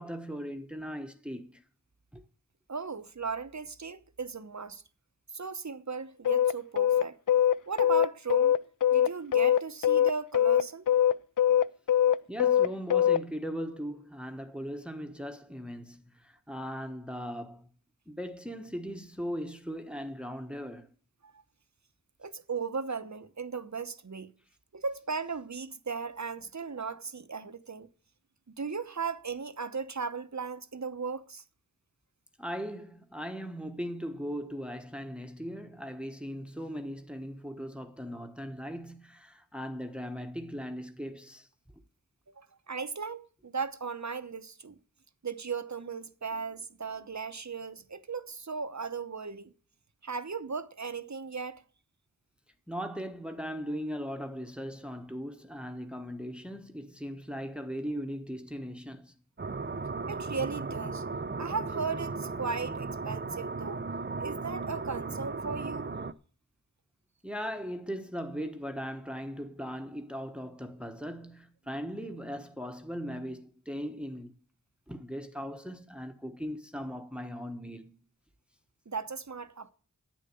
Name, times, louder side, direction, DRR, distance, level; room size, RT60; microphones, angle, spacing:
voice 1, 0.0-1.6 2.1-2.2 12.3-17.7 18.1-20.9 32.4-41.5 52.7-59.1 67.2-74.4 74.9-77.9, equal, 5° right, 1.2 m, -39 dB
voice 2, 2.7-4.8 5.3-7.2 7.7-8.5 8.9-10.9 21.2-21.4 22.2-24.3 24.7-27.9 28.6-31.4 42.4-44.7 45.2-49.5 50.0-51.6 60.1-61.1 61.4-63.9 64.2-65.9 78.9-79.7, right 5 dB, 55° right, 0.9 m, -37 dB
sound 1, 6.2-13.2, left 10 dB, 70° left, 0.5 m, -23 dB
sound 2, 59.4-66.1, right 4 dB, 30° right, 0.6 m, -36 dB
10.0 x 8.9 x 6.9 m
wide cardioid pair, 40°, 34 cm